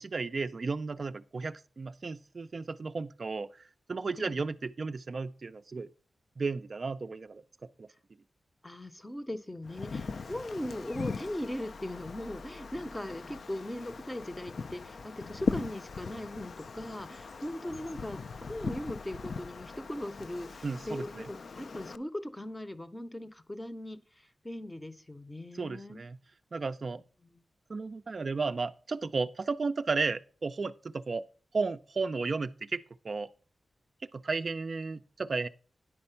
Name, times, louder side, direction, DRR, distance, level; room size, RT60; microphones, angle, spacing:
voice 1, 0.0-3.6 3.9-5.9 6.4-7.4 7.8-7.9 20.6-21.3 25.5-26.2 26.5-27.0 27.7-31.2 31.5-33.3 34.1-35.5, right 4 dB, 45° right, 0.3 m, -34 dB
voice 2, 8.6-18.2 18.5-24.0 24.4-26.0, left 1 dB, 10° left, 0.6 m, -39 dB
Wind, 9.6-22.0, left 4 dB, 60° left, 0.3 m, -40 dB
9.8 x 4.3 x 5.5 m
wide cardioid pair, 125°, 0 cm